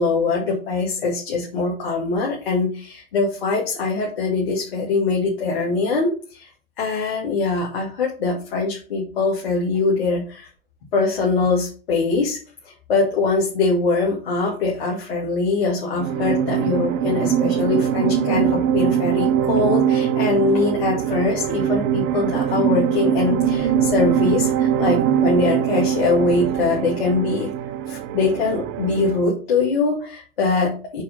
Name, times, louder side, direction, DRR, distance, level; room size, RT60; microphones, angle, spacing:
voice 1, 0.0-6.5 6.8-10.5 10.9-12.4 12.9-27.5 27.9-31.0, left 3 dB, 70° left, -2 dB, 2.4 m, -22 dB
sound 1, 16.0-29.3, right 9 dB, 40° right, 0.8 m, -22 dB
6.9 x 4.6 x 5.2 m, 0.38 s
hypercardioid pair, 105°, 30 cm